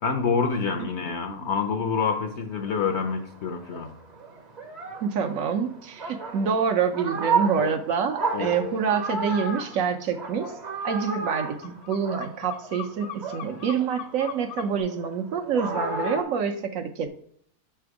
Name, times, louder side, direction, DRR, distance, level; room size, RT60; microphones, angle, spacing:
voice 1, 0.0-3.9 7.6-7.7 8.3-8.5, left 5 dB, 60° left, 6 dB, 0.8 m, -27 dB
sound 1, 2.6-12.9 13.2-16.2, right 4 dB, 35° right, 0.7 m, -32 dB
voice 2, 5.0-10.5 10.8-17.1, right 6 dB, 70° right, 6 dB, 1.0 m, -27 dB
sound 2, 9.7-9.8 10.1-14.8, left 12 dB, 85° left, 1.5 m, -40 dB
5.8 x 3.5 x 4.7 m, 0.65 s
omnidirectional pair, 1.6 m